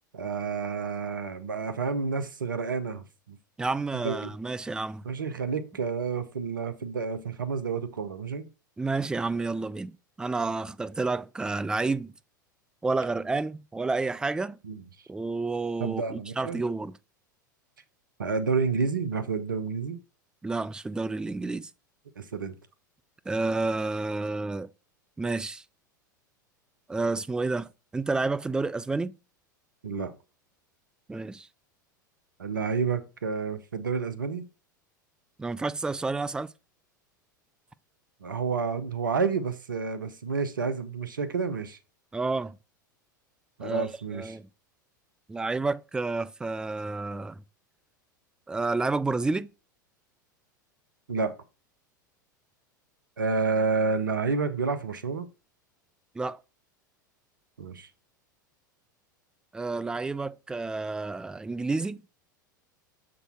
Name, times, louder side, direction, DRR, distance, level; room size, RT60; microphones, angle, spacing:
voice 1, 0.1-3.4 3.9-4.3 5.0-8.5 14.6-14.8 15.8-16.6 18.2-20.0 22.2-22.5 29.8-30.1 32.4-34.4 38.2-41.8 43.6-44.4 51.1-51.3 53.2-55.3 57.6-57.9, right 5 dB, 75° right, 0.8 m, -30 dB
voice 2, 3.6-5.0 8.8-12.1 12.8-14.6 15.1-17.0 20.4-21.7 23.3-24.7 25.2-25.6 26.9-29.1 31.1-31.5 35.4-36.5 42.1-42.6 43.6-44.5 45.3-47.4 48.5-49.5 56.2-56.4 59.5-62.0, right 3 dB, 5° right, 0.3 m, -30 dB
6.8 x 3.8 x 4.4 m
figure-of-eight pair, 85°, 11 cm